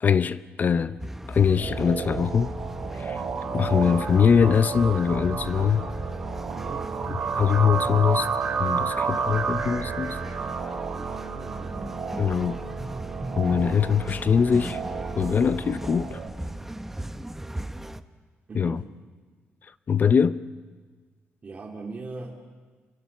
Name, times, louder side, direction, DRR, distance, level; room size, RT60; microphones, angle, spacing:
voice 1, 0.0-1.0 1.3-2.5 2.9-3.2 3.5-5.9 7.4-8.3 8.6-10.2 12.2-12.6 13.4-14.8 15.2-16.2 18.5-18.8 19.9-20.4, left 7 dB, 45° left, 0.8 m, -22 dB
sound 1, 1.0-18.0, right 1 dB, 10° right, 0.9 m, -39 dB
sound 2, 1.3-16.3, right 5 dB, 60° right, 3.0 m, -31 dB
voice 2, 6.5-6.9 8.8-9.4 11.2-11.7 18.5-18.9 21.4-22.4, right 3 dB, 35° right, 2.7 m, -40 dB
29.5 x 24.0 x 6.8 m
cardioid pair, 115°, 4 cm